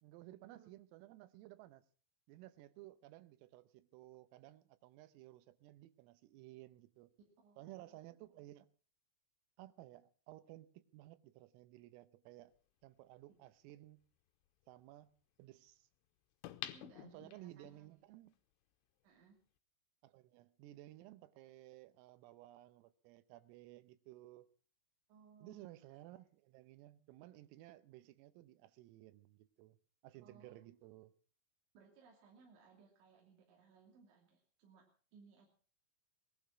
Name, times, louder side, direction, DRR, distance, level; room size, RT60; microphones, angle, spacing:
voice 1, 0.0-1.8 2.3-7.1 7.6-8.7 9.6-12.5 12.8-14.0 14.7-15.1 15.4-15.9 17.0-18.3 20.0-24.5 25.4-29.8 30.0-31.1, right 16 dB, 85° right, 3.6 m, -56 dB
voice 2, 7.4-8.0 16.6-18.0 19.0-19.4 25.1-25.6 30.2-30.7 31.7-34.8 35.1-35.5, right 5 dB, 65° right, 5.1 m, -64 dB
sound 1, 12.8-12.9 16.4-17.8 18.3-18.4, left 14 dB, 80° left, 3.3 m, -48 dB
19.5 x 12.0 x 6.0 m
omnidirectional pair, 5.9 m